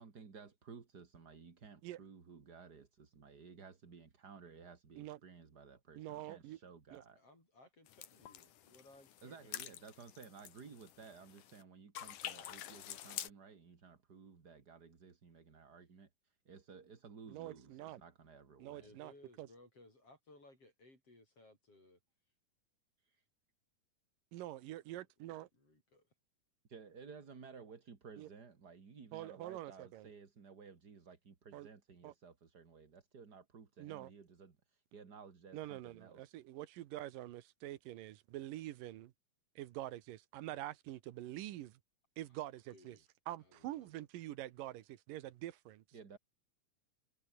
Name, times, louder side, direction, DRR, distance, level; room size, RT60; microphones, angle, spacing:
voice 1, 0.0-7.2 9.2-18.9 23.0-23.2 26.7-36.4 45.9-46.2, right 5 dB, 35° right, 2.5 m, -56 dB
voice 2, 6.0-6.6 6.9-7.0 17.3-18.0 18.6-19.1 19.4-19.5 24.3-25.5 28.2-28.3 29.1-30.1 31.5-31.7 32.0-32.1 33.8-34.1 35.5-39.1 39.6-41.8 42.2-43.0 43.3-45.8, right 14 dB, 90° right, 2.8 m, -46 dB
voice 3, 7.2-9.6 18.8-22.0 25.2-26.1 42.3-42.4 42.7-43.1 43.4-43.9, left 2 dB, 45° left, 9.0 m, -62 dB
sound 1, 7.9-11.6 11.9-13.3, left 11 dB, 75° left, 3.0 m, -48 dB
omnidirectional pair, 3.8 m